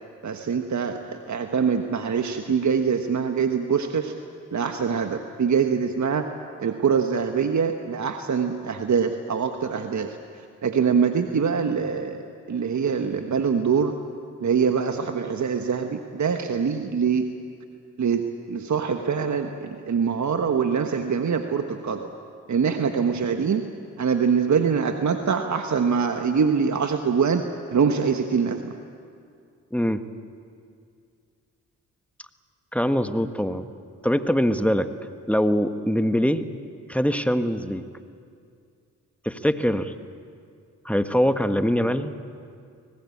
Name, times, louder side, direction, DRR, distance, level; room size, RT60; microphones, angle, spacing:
voice 1, 0.2-4.1 4.5-6.3 6.6-12.2 12.5-13.9 14.4-17.2 18.0-18.2 18.5-22.1 22.5-23.6 24.0-27.4 27.7-28.8, right 6 dB, 50° right, 6 dB, 1.4 m, -24 dB
voice 2, 29.7-30.0 32.7-33.7 34.0-34.9 35.3-36.4 36.9-37.8 39.2-39.9 40.8-42.2, equal, 5° left, 9 dB, 1.5 m, -23 dB
25.0 x 19.0 x 8.6 m, 2.3 s
supercardioid pair, 45°, 36 cm